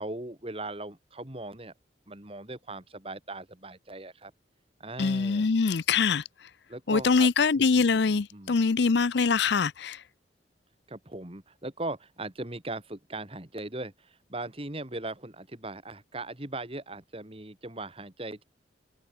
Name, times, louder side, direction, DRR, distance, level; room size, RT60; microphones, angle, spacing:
voice 1, 0.0-1.7 2.1-4.3 4.8-5.5 6.7-7.3 7.5-8.7 10.9-18.4, right 2 dB, 30° right, 2.4 m, -39 dB
voice 2, 5.0-6.2 6.9-10.0, left 5 dB, 65° left, 0.5 m, -24 dB
head